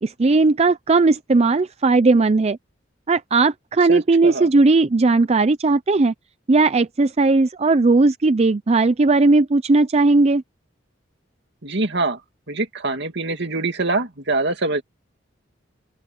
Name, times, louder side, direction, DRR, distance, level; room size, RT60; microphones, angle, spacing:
voice 1, 0.0-2.6 3.1-6.1 6.5-10.4, right 3 dB, 35° right, 0.5 m, -17 dB
voice 2, 3.9-4.5 11.6-12.2 12.5-14.8, right 2 dB, 65° right, 2.6 m, -24 dB
open air
head